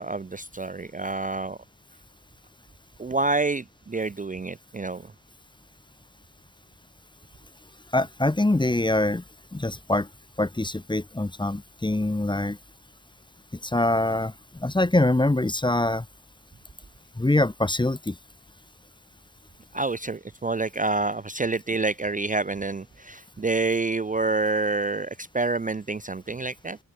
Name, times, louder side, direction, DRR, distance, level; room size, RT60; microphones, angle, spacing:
voice 1, 0.0-1.6 3.0-5.1 19.7-26.8, right 3 dB, 25° right, 0.5 m, -28 dB
voice 2, 7.9-9.2 9.5-10.1 10.4-12.6 13.6-16.0 17.2-18.1, left 2 dB, 15° left, 0.8 m, -24 dB
open air
wide cardioid pair, 65°, 34 cm